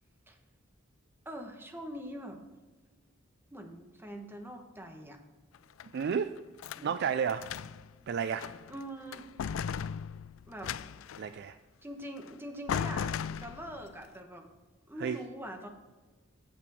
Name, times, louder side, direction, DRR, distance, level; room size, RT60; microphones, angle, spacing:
voice 1, 1.2-2.4 3.5-5.2 6.7-7.0 8.0-8.1 8.7-9.3 10.5-10.7 11.8-14.5 14.9-15.7, equal, 10° right, 4 dB, 1.1 m, -43 dB
sound 1, 5.5-6.9 7.3-7.9 8.3-8.8 9.1-11.3 12.2-12.3 12.7-13.9, left 7 dB, 70° left, 0.3 m, -37 dB
voice 2, 5.9-6.3 6.8-7.5 8.1-8.5 11.2-11.6 15.0-15.2, right 7 dB, 55° right, 11 dB, 0.3 m, -31 dB
8.5 x 7.0 x 4.8 m, 1.3 s
head